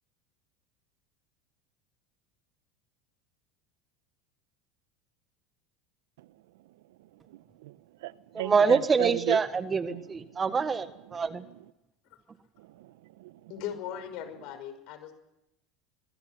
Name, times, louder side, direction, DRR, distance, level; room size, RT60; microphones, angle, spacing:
voice 1, 7.3-9.4 9.9-10.0 12.6-13.5, right 18 dB, 75° right, 1.0 m, -36 dB
voice 2, 8.3-11.4, right 5 dB, 25° right, 1.6 m, -26 dB
voice 3, 13.5-15.1, left 9 dB, 60° left, 5.7 m, -38 dB
24.5 x 22.5 x 6.0 m
hypercardioid pair, 90°, 0 cm